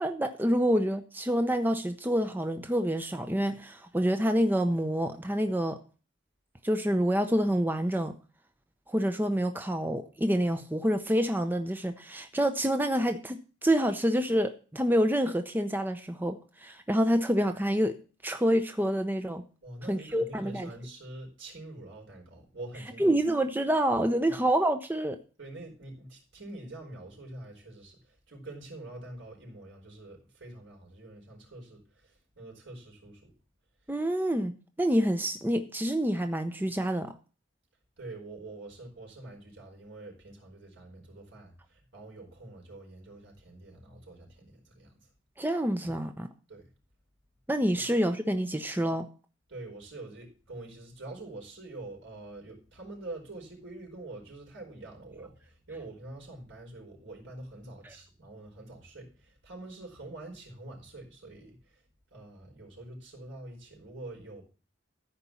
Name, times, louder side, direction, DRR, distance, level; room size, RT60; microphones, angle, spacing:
voice 1, 0.0-5.8 6.6-8.1 8.9-18.0 18.2-19.4 19.9-20.7 23.0-25.2 33.9-37.1 45.4-46.3 47.5-49.1 57.8-57.9, equal, 10° right, 0.7 m, -27 dB
voice 2, 19.6-23.2 24.3-24.4 25.4-33.3 38.0-45.0 45.8-45.9 46.5-46.7 49.5-61.8 62.1-64.4, right 2 dB, 70° right, 4.8 m, -45 dB
13.5 x 5.2 x 7.1 m
head